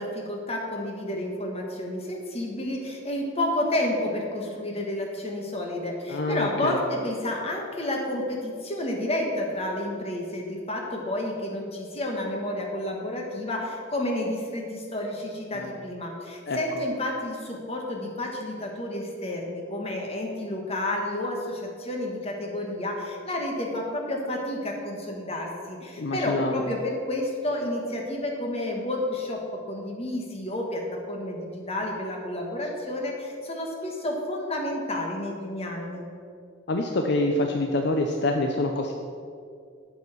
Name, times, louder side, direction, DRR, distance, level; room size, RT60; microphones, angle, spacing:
voice 1, 0.0-29.4 29.7-30.8 31.1-36.1, left 1 dB, 30° left, 0 dB, 1.4 m, -30 dB
voice 2, 6.1-6.8 15.5-15.7 16.5-16.6 26.0-26.6 36.7-38.9, left 2 dB, 55° left, 3 dB, 0.6 m, -26 dB
8.3 x 7.1 x 6.0 m, 2.4 s
head